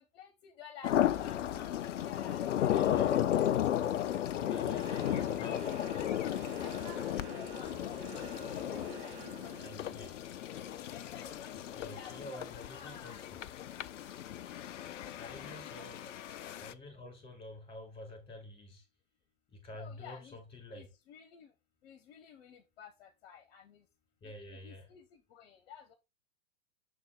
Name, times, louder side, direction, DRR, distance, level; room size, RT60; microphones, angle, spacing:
voice 1, 0.0-4.3 4.7-5.3 5.9-8.5 9.0-9.5 10.3-10.5 10.9-12.4 12.7-13.6 14.6-14.7 15.0-15.9 19.8-20.4 20.7-21.5 21.8-23.8 24.2-24.3 24.6-25.0 25.3-25.9, left 8 dB, 45° left, 1.1 m, -53 dB
sound 1, 0.8-16.7, left 11 dB, 60° left, 0.6 m, -34 dB
voice 2, 2.7-3.2 4.4-5.8 9.6-10.1 11.6-13.4 15.2-16.2 16.6-18.9 19.5-20.9 24.2-24.9, left 1 dB, 10° left, 2.6 m, -48 dB
sound 2, 4.4-9.7, right 11 dB, 35° right, 0.6 m, -50 dB
6.9 x 3.9 x 3.7 m
figure-of-eight pair, 100°, 41 cm